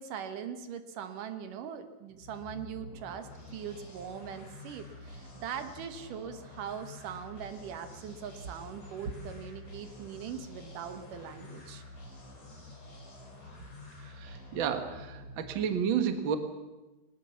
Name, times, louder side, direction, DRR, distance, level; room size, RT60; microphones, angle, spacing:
voice 1, 0.0-11.8, right 8 dB, 65° right, 9 dB, 2.4 m, -41 dB
sound 1, 2.1-15.9, left 2 dB, 40° left, 6.5 m, -49 dB
voice 2, 14.0-16.3, right 8 dB, 80° right, 8 dB, 1.1 m, -31 dB
20.0 x 19.0 x 7.1 m, 1.1 s
omnidirectional pair, 4.7 m